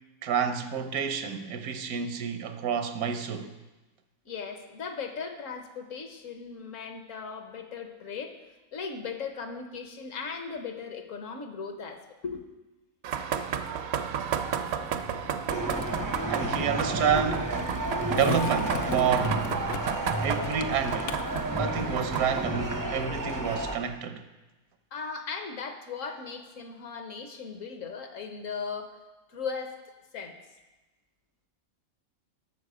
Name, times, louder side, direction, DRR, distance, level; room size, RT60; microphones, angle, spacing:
voice 1, 0.2-3.5 13.9-14.2 16.3-17.6 18.1-19.4 20.2-24.2, right 7 dB, 80° right, 1.2 m, -29 dB
voice 2, 4.3-8.4 8.7-12.4 24.9-29.0 29.3-29.8 30.1-30.4, left 5 dB, 65° left, 1.2 m, -37 dB
sound 1, 13.0-22.4, right 7 dB, 65° right, 0.7 m, -33 dB
Skateboard, 14.3-22.3, left 7 dB, 85° left, 1.1 m, -40 dB
sound 2, 15.5-23.8, right 1 dB, 25° right, 0.4 m, -32 dB
11.5 x 6.8 x 4.9 m
omnidirectional pair, 1.5 m